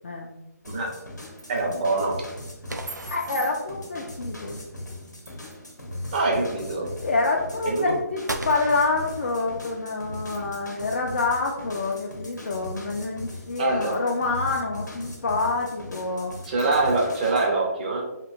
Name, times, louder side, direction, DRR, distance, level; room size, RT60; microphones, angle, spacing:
sound 1, 0.6-17.5, left 1 dB, 85° left, 0.7 m, -39 dB
sound 2, 1.4-1.9 2.9-3.5 5.3-6.1 7.6-7.7 8.3-8.7 9.3-9.4 10.3-10.7 11.9-12.6 13.0-13.1 13.9-14.6 15.1-15.2 15.6-15.7 16.6-17.0, right 3 dB, 60° right, 1.1 m, -45 dB
voice 1, 1.5-2.2 6.1-6.9 7.6-7.9 13.6-14.0 16.5-18.0, right 2 dB, 30° right, 0 dB, 0.6 m, -24 dB
sound 3, 2.7-4.1 8.3-9.9, right 2 dB, 90° right, 0.4 m, -37 dB
voice 2, 3.1-4.6 7.0-16.3, left 3 dB, 45° left, 0 dB, 0.3 m, -27 dB
2.9 x 2.6 x 2.5 m, 0.95 s
figure-of-eight pair, 145°, 9 cm